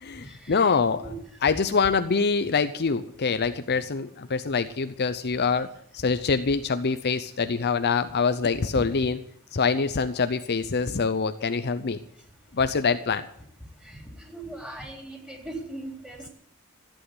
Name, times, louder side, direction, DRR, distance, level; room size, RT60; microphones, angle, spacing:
voice 1, 0.0-1.1 1.4-5.7 5.9-9.2 9.5-12.0 12.5-13.3, left 5 dB, 50° left, 10 dB, 0.6 m, -25 dB
voice 2, 14.3-16.3, right 2 dB, 5° right, 2 dB, 3.6 m, -38 dB
14.5 x 8.4 x 9.6 m, 0.67 s
head